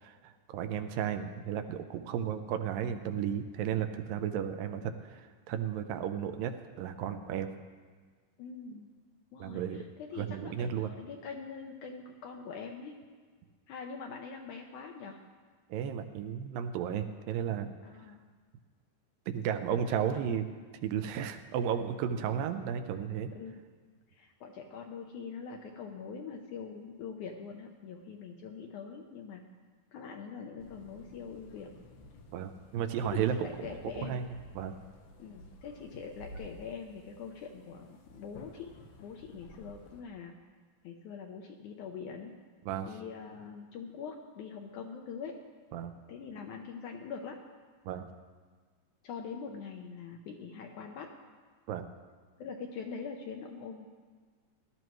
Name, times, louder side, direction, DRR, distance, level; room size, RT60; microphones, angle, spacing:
voice 1, 0.0-7.5 9.4-9.8 10.2-10.9 15.7-17.7 19.3-20.5 20.8-23.3 32.3-33.7 34.0-34.2 34.5-34.7 42.7-42.9 45.7-45.9 47.9-48.1 51.7-51.9, right 9 dB, 80° right, 8 dB, 2.3 m, -34 dB
voice 2, 8.4-8.9 9.3-12.9 13.7-15.2 17.8-18.2 20.0-20.6 22.2-22.3 23.3-23.6 24.1-29.4 29.9-31.7 33.0-34.2 35.2-38.7 39.0-40.3 40.8-42.3 42.8-45.3 46.1-47.4 49.0-51.1 52.4-53.9, left 6 dB, 75° left, 2 dB, 1.9 m, -43 dB
sound 1, 30.6-40.0, left 1 dB, 90° left, 3.1 m, -53 dB
18.5 x 12.0 x 3.1 m, 1.5 s
omnidirectional pair, 4.2 m